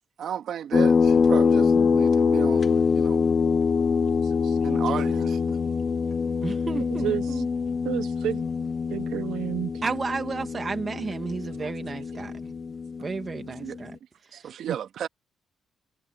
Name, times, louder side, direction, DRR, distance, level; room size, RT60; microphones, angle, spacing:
voice 1, 0.2-3.3 4.6-5.6 13.5-13.8 14.3-15.1, right 9 dB, 65° right, 2.5 m, -34 dB
sound 1, 0.7-13.8, left 5 dB, 40° left, 0.8 m, -24 dB
voice 2, 1.6-2.0 6.4-7.5 9.8-12.5 13.0-14.0 14.4-14.5, right 4 dB, 35° right, 2.4 m, -33 dB
voice 3, 4.2-4.6 6.9-7.4 7.8-8.4 8.9-9.7 11.6-11.7 14.6-14.8, right 12 dB, 85° right, 1.0 m, -31 dB
cardioid pair, 90°, 0 cm